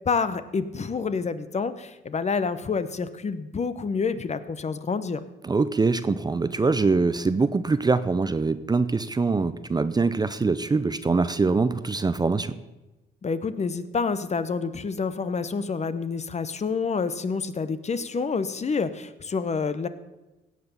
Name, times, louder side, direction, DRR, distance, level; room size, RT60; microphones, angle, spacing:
voice 1, 0.1-5.3 13.2-19.9, left 5 dB, 35° left, 13 dB, 0.8 m, -28 dB
voice 2, 5.4-12.5, right 4 dB, 20° right, 13 dB, 0.5 m, -23 dB
17.0 x 6.0 x 6.8 m, 1.1 s
cardioid pair, 90°, 20 cm